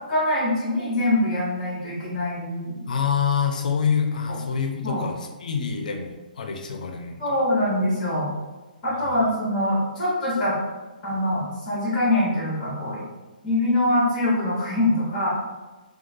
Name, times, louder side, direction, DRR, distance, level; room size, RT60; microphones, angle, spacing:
voice 1, 0.1-2.8 4.3-4.4 4.8-5.1 7.2-8.3 8.8-10.6 11.0-13.0 13.4-15.3, left 1 dB, 10° left, -7 dB, 0.9 m, -24 dB
voice 2, 2.9-7.4 9.0-9.3, left 6 dB, 60° left, 4 dB, 0.4 m, -26 dB
3.1 x 2.3 x 2.5 m, 1.2 s
hypercardioid pair, 165°, 5 cm